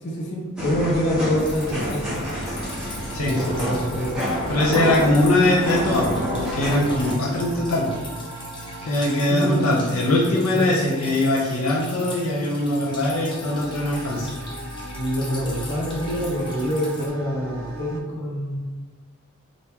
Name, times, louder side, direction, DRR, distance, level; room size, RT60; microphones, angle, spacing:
voice 1, 0.0-2.3 3.1-4.2 9.3-9.7 10.5-10.6 14.9-18.6, equal, 55° left, -3 dB, 0.8 m, -26 dB
sound 1, 0.6-7.1, equal, 5° right, 0.9 m, -28 dB
sound 2, 0.8-18.0, right 1 dB, 80° right, 0.5 m, -39 dB
Drip, 1.4-17.1, left 2 dB, 25° left, 0.6 m, -40 dB
voice 2, 4.5-7.9 8.8-14.3, left 1 dB, 85° left, -4 dB, 0.6 m, -21 dB
2.9 x 2.5 x 3.5 m, 1.3 s
head